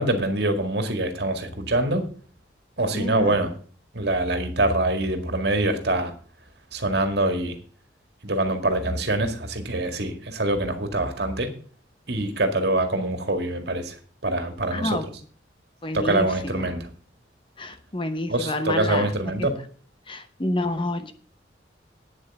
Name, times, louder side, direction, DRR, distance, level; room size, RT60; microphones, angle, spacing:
voice 1, 0.0-2.0 2.8-3.5 3.9-6.1 6.7-7.6 8.2-11.5 12.1-14.0 14.2-15.0 15.9-16.9 18.3-19.5, right 2 dB, 60° right, 7 dB, 2.0 m, -24 dB
voice 2, 2.9-3.4 14.7-15.2 15.8-16.8 17.6-19.1 19.4-19.5 20.1-21.1, left 2 dB, 25° left, 10 dB, 0.9 m, -29 dB
9.1 x 7.7 x 7.7 m, 0.43 s
head